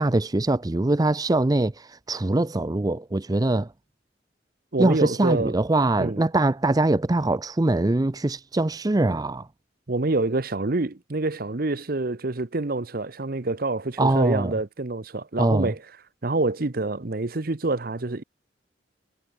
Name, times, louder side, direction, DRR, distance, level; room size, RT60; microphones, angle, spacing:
voice 1, 0.0-3.7 4.8-9.5 14.0-14.6 15.4-15.7, right 2 dB, 20° right, 0.5 m, -23 dB
voice 2, 4.7-5.5 6.0-6.2 9.9-15.8 16.2-18.2, right 2 dB, 50° right, 0.9 m, -26 dB
head